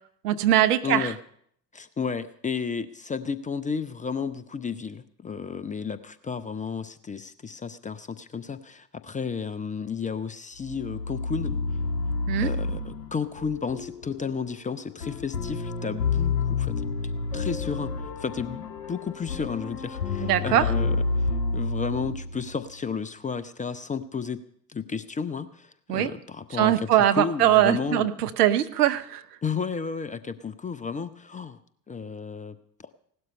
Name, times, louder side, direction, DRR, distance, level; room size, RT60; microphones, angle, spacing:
voice 1, 0.2-1.1 12.3-12.5 20.2-20.7 25.9-26.1 26.6-29.2, right 12 dB, 65° right, 10 dB, 0.9 m, -22 dB
voice 2, 0.8-1.2 1.7-11.5 12.4-16.7 17.3-17.9 18.2-24.4 24.7-26.9 27.2-28.1 29.4-31.6 31.9-33.0, left 5 dB, 15° left, 14 dB, 0.6 m, -32 dB
sound 1, 10.6-22.7, left 4 dB, 70° left, 1.6 m, -29 dB
17.0 x 12.0 x 5.6 m, 0.66 s
figure-of-eight pair, 60°, 50 cm